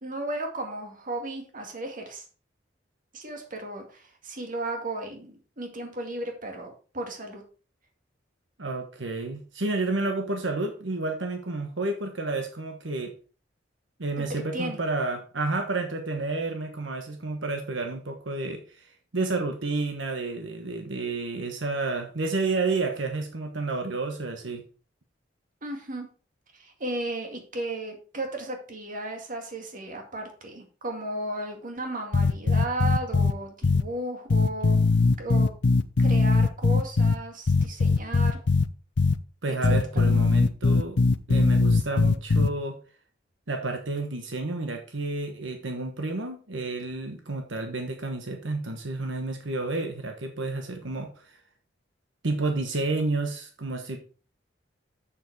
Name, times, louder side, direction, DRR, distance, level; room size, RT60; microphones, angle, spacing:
voice 1, 0.0-2.2 3.1-7.4 14.2-14.3 14.5-14.8 25.6-26.1 26.5-34.8 35.2-35.5 36.0-38.4 39.5-39.8, right 2 dB, 45° right, 3 dB, 2.1 m, -35 dB
voice 2, 8.6-13.1 14.0-24.6 39.4-41.0 41.3-42.8 43.5-51.4 52.2-54.0, right 3 dB, 80° right, 4 dB, 1.3 m, -30 dB
sound 1, 32.1-33.3 33.6-33.8 34.3-37.1 37.5-38.6 39.0-39.1 39.6-42.5, left 3 dB, 65° left, 0.6 m, -20 dB
7.5 x 6.8 x 4.8 m, 0.38 s
head